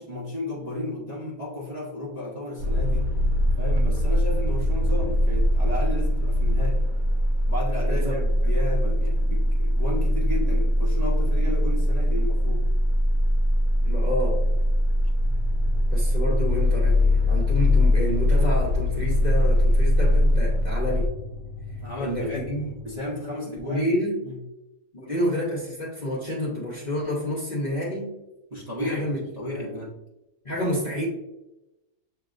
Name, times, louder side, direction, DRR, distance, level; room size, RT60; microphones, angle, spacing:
voice 1, 0.0-3.1 3.6-6.8 7.5-12.7 21.8-22.4 22.8-23.9 24.3-24.4 28.5-30.0, left 2 dB, 35° right, -5 dB, 0.8 m, -33 dB
sound 1, 2.6-21.1, left 1 dB, 70° right, 1.1 m, -22 dB
voice 2, 7.8-8.3 13.8-14.5 15.9-21.2 22.0-22.7 23.5-24.3 24.9-28.2 28.8-29.2 29.6-29.8 30.4-31.1, equal, 35° left, -4 dB, 0.8 m, -29 dB
sound 2, 15.2-23.0, left 1 dB, 75° left, 1.1 m, -39 dB
7.3 x 2.9 x 2.4 m, 0.94 s
omnidirectional pair, 1.6 m